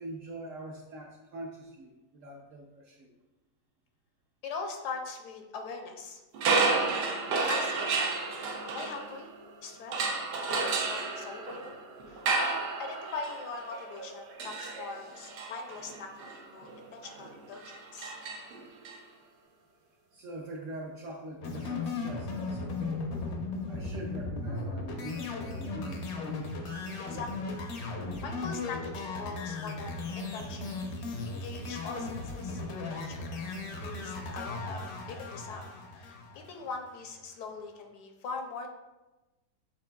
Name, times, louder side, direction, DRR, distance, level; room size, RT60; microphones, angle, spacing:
voice 1, 0.0-3.1 18.3-18.4 20.1-23.1 23.7-26.1, right 1 dB, 70° right, 0 dB, 0.8 m, -43 dB
voice 2, 4.4-6.2 6.5-8.1 8.6-9.3 9.6-10.1 10.5-11.8 12.1-18.1 27.0-27.5 28.2-30.6 31.3-32.6 32.9-33.4 33.8-35.7 36.0-38.7, left 4 dB, 80° left, 3 dB, 1.2 m, -41 dB
sound 1, 6.3-9.4 9.9-18.9, right 4 dB, 85° right, 1.3 m, -32 dB
sound 2, 21.4-36.8, left 3 dB, 65° left, 0.7 m, -36 dB
6.9 x 3.2 x 2.2 m, 1.1 s
omnidirectional pair, 1.8 m